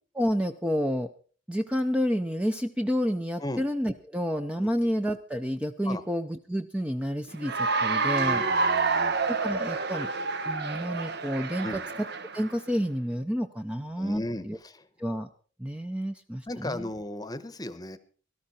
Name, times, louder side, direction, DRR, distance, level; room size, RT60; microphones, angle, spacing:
voice 1, 0.1-1.1 1.5-8.4 9.3-10.1 10.5-11.8 12.3-14.6 15.0-15.3 15.6-16.9, equal, 5° right, 6 dB, 0.6 m, -29 dB
Cheering / Applause, 7.4-12.6, right 4 dB, 60° right, 1.1 m, -28 dB
voice 2, 8.2-9.2 11.6-11.8 14.0-14.8 16.5-18.0, left 1 dB, 20° left, 14 dB, 1.0 m, -36 dB
17.5 x 13.0 x 4.2 m, 0.40 s
head